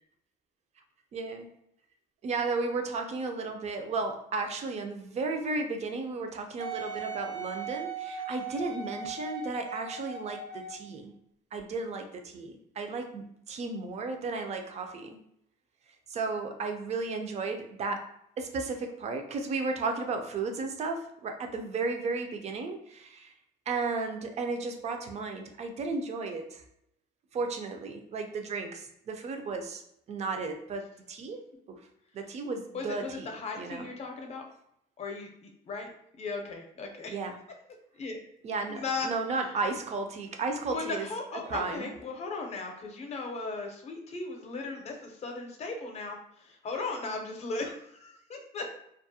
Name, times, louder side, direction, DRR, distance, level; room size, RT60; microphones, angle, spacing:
voice 1, 1.1-1.5 2.2-11.1 11.5-15.2 16.1-18.1 18.4-23.3 23.7-26.6 27.3-29.8 30.1-31.8 32.1-33.3 33.6-33.9 37.1-37.4 38.4-41.1 41.5-41.9, right 3 dB, 40° right, 5 dB, 0.4 m, -34 dB
Wind instrument woodwind instrument, 6.6-10.9 11.6-11.7, right 5 dB, 85° right, 0.5 m, -38 dB
voice 2, 32.7-34.4 35.0-35.9 36.2-37.2 38.0-38.2 38.7-39.5 40.7-48.7, left 3 dB, 40° left, 3 dB, 0.6 m, -37 dB
2.3 x 2.1 x 2.7 m, 0.74 s
cardioid pair, 110°, 17 cm